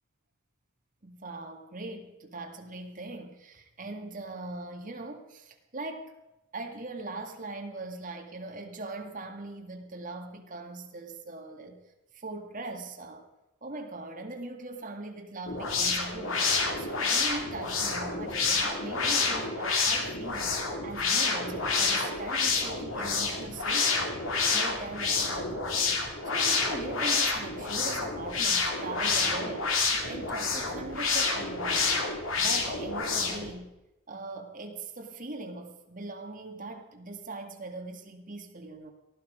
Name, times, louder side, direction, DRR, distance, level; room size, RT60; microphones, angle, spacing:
voice 1, 1.0-6.1 6.5-11.8 12.1-13.3 13.6-16.5 16.8-20.5 20.8-24.1 24.5-25.9 26.3-29.7 30.1-32.1 32.4-33.7 34.1-38.9, right 2 dB, 40° right, 3 dB, 1.9 m, -41 dB
sound 1, 15.5-33.5, left 4 dB, 70° left, 2.5 m, -28 dB
19.0 x 13.5 x 5.1 m, 0.95 s
head